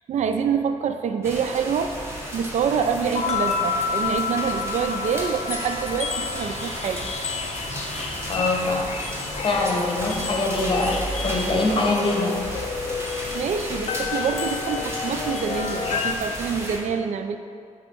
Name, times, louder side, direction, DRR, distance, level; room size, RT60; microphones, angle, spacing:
voice 1, 0.1-2.0 2.3-7.1 13.3-17.4, right 6 dB, 65° right, 8 dB, 0.4 m, -26 dB
sound 1, 1.2-16.8, equal, 20° right, 1.3 m, -34 dB
sound 2, 3.1-16.2, left 5 dB, 60° left, 0.4 m, -30 dB
voice 2, 8.3-9.0 9.4-12.4, left 2 dB, 40° left, -1 dB, 1.2 m, -23 dB
5.0 x 4.6 x 5.3 m, 2.3 s
cardioid pair, 95°, 13 cm